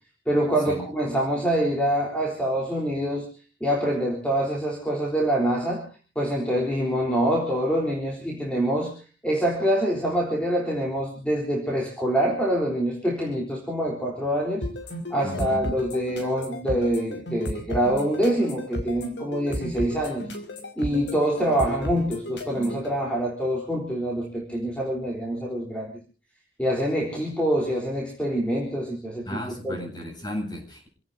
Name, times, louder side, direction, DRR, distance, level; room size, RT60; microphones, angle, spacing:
voice 1, 0.3-3.3 3.6-5.8 6.2-8.9 9.2-14.6 15.1-20.3 20.8-25.9 26.6-29.8, right 1 dB, 5° left, -1 dB, 3.8 m, -25 dB
sound 1, 14.6-22.9, left 1 dB, 90° left, 5.2 m, -33 dB
voice 2, 15.2-15.6 29.2-30.9, left 1 dB, 25° left, 2 dB, 7.9 m, -34 dB
28.5 x 17.5 x 2.7 m, 0.36 s
head